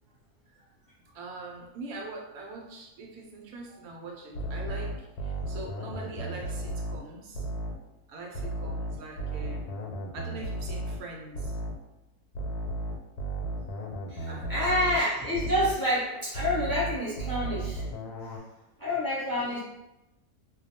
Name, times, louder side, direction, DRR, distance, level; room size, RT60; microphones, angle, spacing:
voice 1, 1.1-7.5 8.1-9.8 10.1-11.6 14.3-15.0 19.4-19.6, right 3 dB, 75° right, -1 dB, 1.0 m, -43 dB
sound 1, 4.3-7.9 8.3-11.9 12.3-15.9 16.3-18.4, right 1 dB, 80° left, 1.1 m, -35 dB
voice 2, 14.1-17.8 18.2-18.3 18.8-19.6, left 1 dB, 20° left, -10 dB, 0.6 m, -28 dB
2.5 x 2.2 x 2.7 m, 0.94 s
omnidirectional pair, 1.6 m